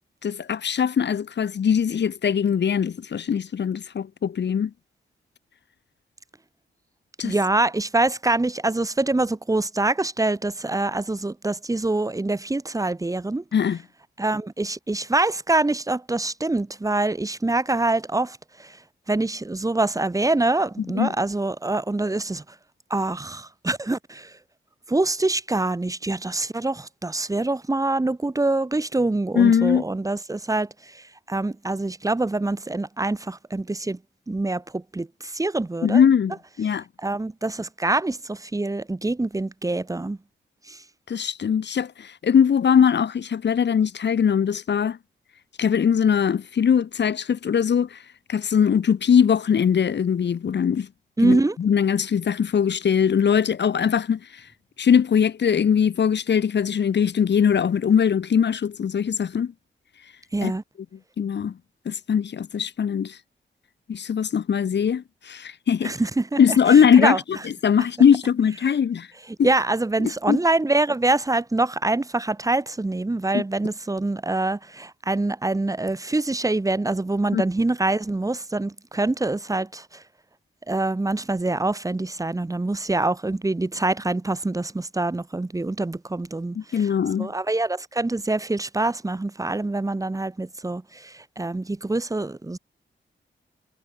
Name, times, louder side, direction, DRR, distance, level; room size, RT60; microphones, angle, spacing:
voice 1, 0.2-4.7 7.2-7.3 13.5-13.8 20.9-21.1 29.3-29.8 35.8-36.8 41.1-45.0 45.6-48.0 48.3-50.9 51.2-54.2 54.8-59.5 60.4-60.5 61.2-61.5 61.8-63.2 63.9-65.9 66.4-67.4 67.6-69.1 69.4-69.5 70.0-70.4 73.3-73.4 77.3-77.4 86.5-87.3, left 7 dB, 60° left, 1.4 m, -21 dB
voice 2, 7.2-13.4 14.2-18.8 19.1-22.4 22.9-24.3 24.9-34.0 34.3-36.0 37.0-40.2 40.7-40.8 51.2-51.6 60.3-60.6 65.8-66.4 66.7-67.2 69.4-80.0 80.7-86.9 87.2-92.6, right 2 dB, 15° right, 1.6 m, -25 dB
wide cardioid pair, 145°, 20 cm